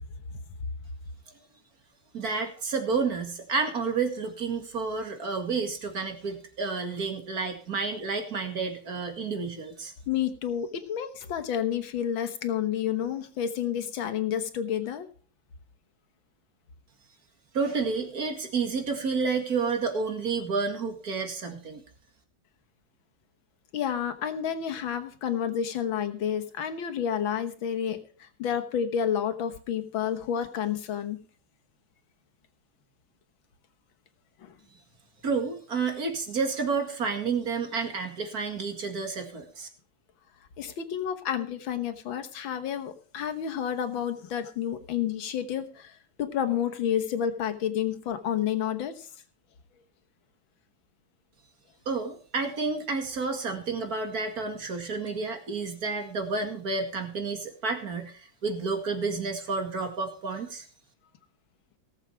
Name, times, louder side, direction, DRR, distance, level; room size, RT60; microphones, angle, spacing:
voice 1, 2.1-9.9 17.5-21.8 35.2-39.7 51.9-60.6, right 4 dB, 50° right, 5 dB, 2.5 m, -30 dB
voice 2, 10.1-15.1 23.7-31.2 34.4-34.6 40.6-49.1, left 9 dB, 80° left, 9 dB, 2.0 m, -30 dB
18.0 x 7.4 x 4.6 m, 0.43 s
omnidirectional pair, 2.1 m